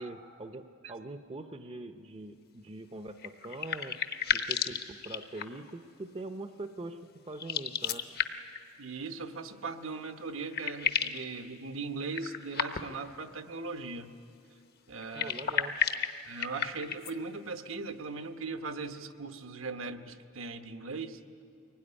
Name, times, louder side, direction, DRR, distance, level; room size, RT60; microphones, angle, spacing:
voice 1, 0.0-4.0 4.3-7.0 7.3-8.0 15.1-15.8, right 2 dB, 30° right, 8 dB, 0.7 m, -43 dB
sound 1, 3.2-5.7 7.3-8.6 10.0-10.1 10.3-11.3 12.1-13.1 15.0-17.1, left 7 dB, 50° left, 1.0 m, -33 dB
voice 2, 8.8-14.1 14.9-15.3 16.3-21.2, right 4 dB, 70° right, 8 dB, 1.1 m, -39 dB
23.0 x 17.5 x 9.9 m, 2.5 s
head